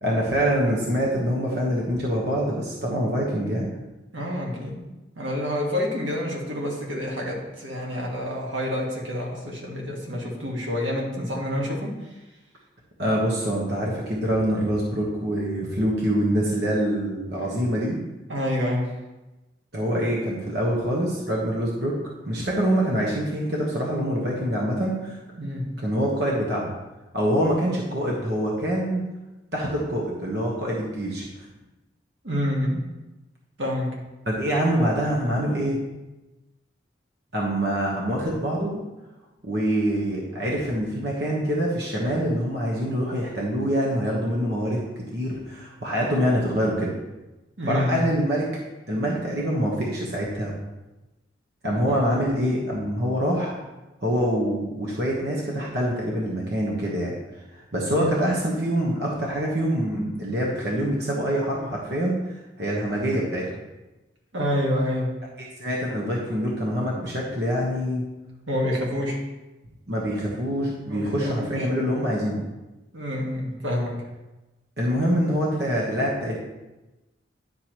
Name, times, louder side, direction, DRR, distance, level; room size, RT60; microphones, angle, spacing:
voice 1, 0.0-3.7 13.0-18.0 19.7-21.9 22.3-25.2 25.8-26.7 27.1-29.0 29.5-31.2 34.3-35.8 37.3-38.8 39.4-44.8 45.1-46.9 47.7-48.5 48.9-50.5 51.6-53.6 54.0-57.1 57.5-62.2 62.6-63.4 65.6-68.0 69.9-72.4 74.8-76.3, equal, 60° right, -3 dB, 1.2 m, -25 dB
voice 2, 4.1-4.8 5.2-12.0 17.4-17.6 18.3-18.9 25.4-25.7 32.2-32.8 33.6-34.0 47.6-48.1 51.7-51.9 58.0-58.1 64.3-65.2 68.5-69.2 70.9-71.7 72.9-74.0, left 1 dB, 85° right, -2 dB, 1.7 m, -28 dB
9.9 x 5.9 x 3.0 m, 1.1 s
head